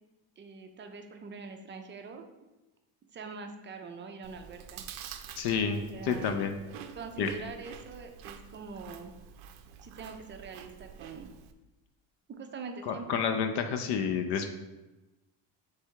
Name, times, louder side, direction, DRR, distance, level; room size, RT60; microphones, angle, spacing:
voice 1, 0.4-2.3 3.1-4.8 5.6-6.3 6.9-9.1 9.8-11.3 12.3-13.3, right 5 dB, 25° right, 5 dB, 0.4 m, -44 dB
Chewing mastication, 4.2-11.5, right 8 dB, 90° right, 0.5 m, -48 dB
voice 2, 5.4-6.5 7.2-7.3 12.9-14.5, left 6 dB, 60° left, 6 dB, 0.5 m, -29 dB
3.4 x 3.3 x 4.6 m, 1.1 s
cardioid pair, 120°, 46 cm